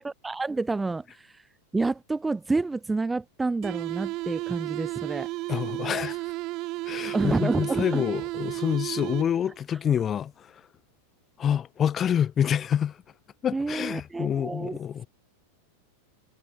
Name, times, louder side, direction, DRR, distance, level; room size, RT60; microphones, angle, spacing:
voice 1, 0.0-1.4 1.7-5.3 7.1-8.0 13.5-14.8, right 3 dB, 10° right, 4.3 m, -29 dB
sound 1, 3.6-9.6, right 21 dB, 40° right, 2.1 m, -33 dB
voice 2, 5.5-6.2 6.9-10.5 11.4-13.0 13.4-15.1, left 9 dB, 25° left, 7.6 m, -27 dB
figure-of-eight pair, 90°, 0 cm